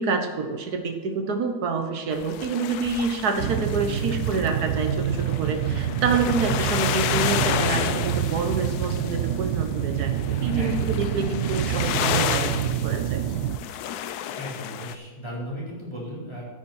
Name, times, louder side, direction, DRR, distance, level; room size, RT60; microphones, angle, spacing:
voice 1, 0.0-13.2, right 4 dB, 60° right, 5 dB, 1.8 m, -27 dB
sound 1, 2.1-15.0, left 11 dB, 70° left, 1.0 m, -31 dB
sound 2, 3.4-13.6, right 9 dB, 75° right, 1.2 m, -27 dB
voice 2, 10.5-11.0 14.3-16.4, equal, 15° left, -7 dB, 4.2 m, -36 dB
12.5 x 9.4 x 4.4 m, 1.5 s
omnidirectional pair, 1.9 m